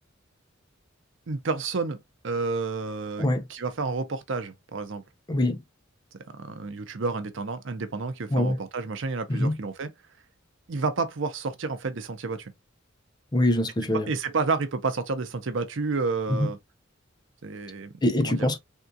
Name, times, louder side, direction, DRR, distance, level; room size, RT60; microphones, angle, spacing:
voice 1, 1.3-5.0 6.3-9.9 10.7-12.5 14.1-16.6 17.4-17.9 18.2-18.5, right 4 dB, 70° right, 0.6 m, -30 dB
voice 2, 5.3-5.6 8.3-8.6 9.3-9.6 13.3-14.1 16.4-16.5 18.0-18.6, left 1 dB, 20° left, 0.5 m, -24 dB
3.6 x 2.3 x 2.6 m
head